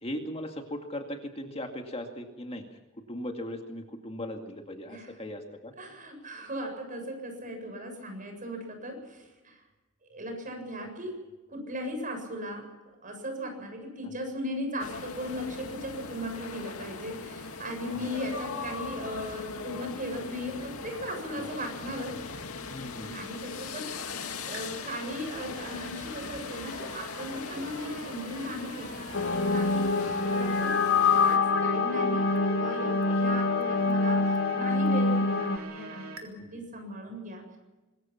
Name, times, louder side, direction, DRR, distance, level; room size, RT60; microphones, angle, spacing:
voice 1, 0.0-2.6 3.1-5.7 14.0-14.1 17.9-18.1 21.4-21.5 22.6-23.1 30.1-30.2 36.4-36.6, left 1 dB, 30° left, 3 dB, 2.2 m, -38 dB
voice 2, 5.8-9.6 10.1-11.2 11.5-22.1 23.0-23.9 24.5-30.8 31.2-37.6, equal, 40° right, 4 dB, 7.7 m, -37 dB
sound 1, 14.8-31.4, left 4 dB, 90° left, 2.2 m, -40 dB
sound 2, 24.5-36.3, right 2 dB, 75° right, 3.7 m, -44 dB
sound 3, 29.1-35.6, left 3 dB, 60° left, 1.2 m, -25 dB
25.0 x 22.0 x 5.9 m, 1.1 s
head